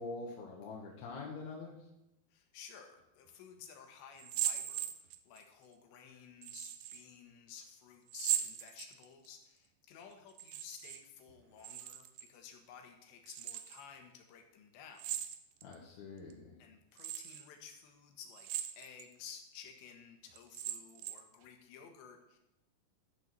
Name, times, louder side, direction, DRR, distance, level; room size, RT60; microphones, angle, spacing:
voice 1, 0.0-1.7 15.6-16.5, left 3 dB, 65° left, -3 dB, 3.4 m, -45 dB
voice 2, 2.3-15.1 16.6-18.5 18.8-22.4, left 7 dB, 85° left, 4 dB, 3.6 m, -54 dB
sound 1, 4.2-5.4 6.4-7.0 8.1-9.3 10.3-11.0 11.3-12.3 13.3-13.8 15.0-15.7 16.3-16.4 17.0-17.4 18.3-19.1 19.6-19.7 20.4-21.3, right 11 dB, 85° right, 2.0 m, -39 dB
13.0 x 6.9 x 6.6 m, 0.91 s
omnidirectional pair, 5.0 m